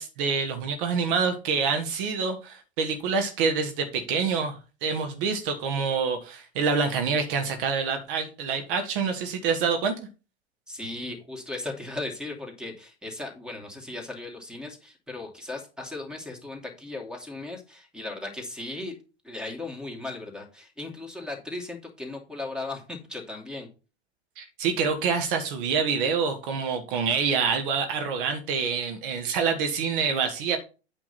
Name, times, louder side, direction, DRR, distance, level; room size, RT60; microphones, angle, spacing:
voice 1, 0.0-9.9 24.4-30.6, right 5 dB, 55° right, 6 dB, 1.6 m, -26 dB
voice 2, 10.7-18.9 19.2-23.7, left 2 dB, 5° right, 2 dB, 2.6 m, -37 dB
8.9 x 5.2 x 4.2 m, 0.33 s
figure-of-eight pair, 90°, 32 cm